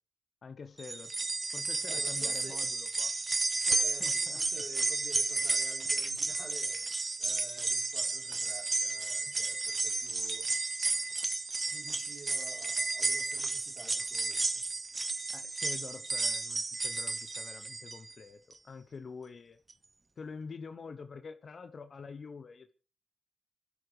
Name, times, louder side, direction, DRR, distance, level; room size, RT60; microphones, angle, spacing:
voice 1, 0.4-1.2 1.5-3.1 3.7-4.6 9.3-9.4 15.3-19.6 20.2-22.7, left 5 dB, 65° left, 0.9 m, -47 dB
sound 1, 0.8-18.1 18.5-18.6 19.7-19.8, right 3 dB, 40° right, 0.9 m, -32 dB
voice 2, 1.9-2.6 3.5-10.5 11.7-14.6, right 4 dB, 65° right, 3.8 m, -50 dB
30.0 x 11.5 x 3.3 m
supercardioid pair, 45°, 0 cm